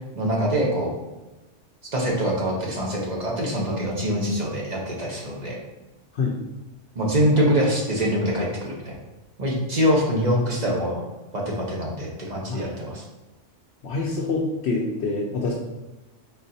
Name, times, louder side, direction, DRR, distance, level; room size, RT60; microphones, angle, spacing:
voice 1, 0.2-0.9 1.9-5.5 7.0-8.9 9.4-11.0 11.3-13.0, equal, 40° right, -3 dB, 0.8 m, -24 dB
voice 2, 13.8-15.5, left 3 dB, 65° left, -2 dB, 0.8 m, -26 dB
4.1 x 3.8 x 2.7 m, 1.1 s
omnidirectional pair, 1.3 m